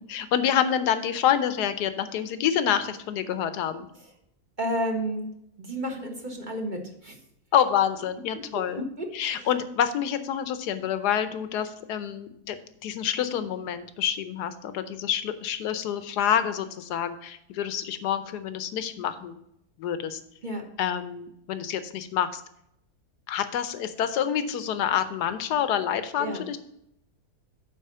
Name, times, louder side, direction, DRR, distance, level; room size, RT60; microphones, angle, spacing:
voice 1, 0.0-3.9 7.5-8.8 9.1-12.6 12.8-19.4 19.8-20.2 20.8-22.4 23.3-26.6, left 9 dB, 75° left, 11 dB, 1.3 m, -27 dB
voice 2, 4.6-5.3 5.6-7.2 8.8-9.1 9.3-9.5 20.4-20.7 26.2-26.4, right 1 dB, 30° right, 2 dB, 1.2 m, -31 dB
9.1 x 4.0 x 6.6 m, 0.75 s
omnidirectional pair, 1.8 m